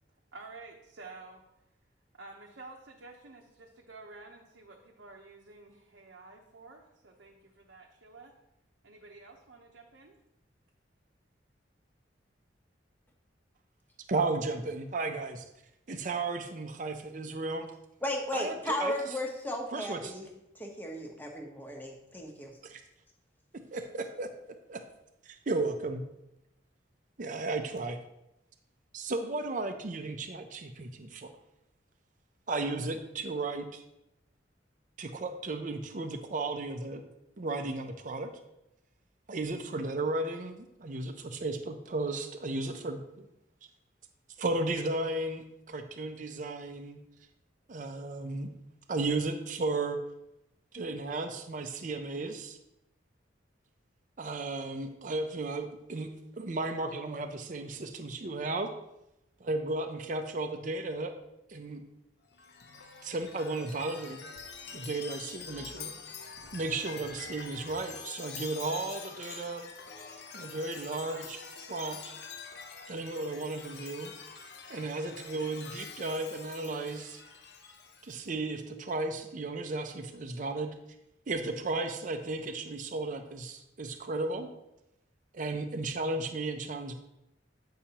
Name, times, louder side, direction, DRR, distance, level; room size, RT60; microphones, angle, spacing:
voice 1, 0.3-1.4 2.1-8.3 8.8-10.2, right 3 dB, 75° right, 0.8 m, -50 dB
voice 2, 14.1-15.4 15.9-17.7 18.3-18.9 19.7-20.1 22.6-22.8 23.5-24.3 24.7-24.8 25.2-26.0 27.2-28.0 28.9-31.3 32.5-33.8 35.0-37.0 37.4-38.3 39.3-43.3 44.4-47.0 47.7-48.5 48.9-50.0 50.7-52.6 54.2-56.1 56.4-58.7 59.4-61.1 61.5-61.8 63.0-64.2 64.7-65.9 66.5-69.7 70.3-71.4 71.7-72.1 72.9-74.1 74.7-77.2 78.0-80.7 81.3-84.5 85.3-86.9, right 2 dB, 45° right, 0.5 m, -34 dB
voice 3, 18.0-20.3 20.5-22.5, left 1 dB, 10° left, 0.9 m, -35 dB
Chime, 62.3-78.2, left 5 dB, 60° left, 0.7 m, -46 dB
8.5 x 5.7 x 2.9 m
head